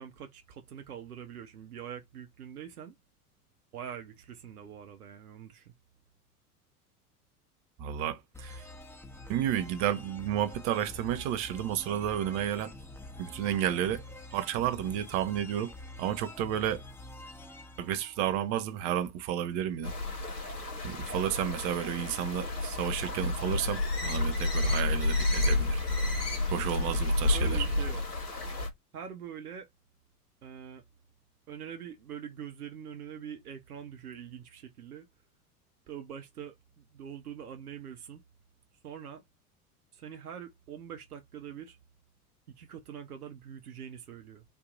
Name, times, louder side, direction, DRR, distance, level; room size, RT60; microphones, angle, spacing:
voice 1, 0.0-2.9 3.7-5.7 26.9-28.1 28.9-29.7 30.4-30.8 31.5-35.1 35.9-38.2 38.8-39.2 39.9-41.8 42.6-44.4, right 8 dB, 75° right, 1.0 m, -44 dB
voice 2, 7.8-8.6 9.3-12.7 13.2-14.0 14.3-15.7 16.0-16.8 17.8-19.9 20.8-25.8 26.5-27.7, right 10 dB, 45° right, 1.0 m, -31 dB
sound 1, 8.3-18.9, left 1 dB, 5° left, 0.9 m, -47 dB
sound 2, 19.8-28.7, left 2 dB, 80° left, 2.2 m, -30 dB
4.4 x 2.9 x 3.9 m
figure-of-eight pair, 75°, 46 cm